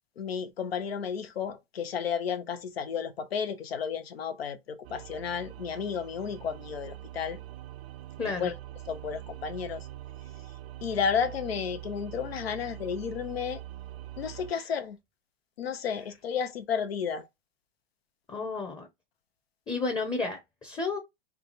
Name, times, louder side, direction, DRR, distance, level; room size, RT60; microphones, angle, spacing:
voice 1, 0.2-7.4 8.2-8.5 8.9-9.9 10.8-13.6 14.2-15.0 15.6-17.3, left 7 dB, 90° left, 0.8 m, -32 dB
sound 1, 4.8-14.5, right 14 dB, 75° right, 0.5 m, -43 dB
voice 2, 8.2-8.5 14.5-14.6 18.3-18.9 19.7-21.0, left 3 dB, 15° left, 0.7 m, -32 dB
3.4 x 2.3 x 4.0 m
hypercardioid pair, 110°, 30 cm